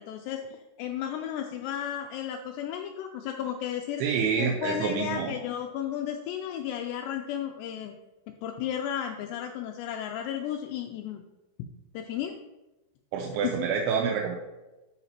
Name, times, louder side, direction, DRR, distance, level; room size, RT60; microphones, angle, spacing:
voice 1, 0.0-4.0 4.4-8.0 8.3-11.2 11.9-12.4 13.4-13.5, left 10 dB, 85° left, 4 dB, 2.4 m, -33 dB
voice 2, 4.0-5.3 13.1-14.4, right 6 dB, 80° right, 0 dB, 3.0 m, -27 dB
12.5 x 5.1 x 4.3 m, 1.1 s
omnidirectional pair, 5.5 m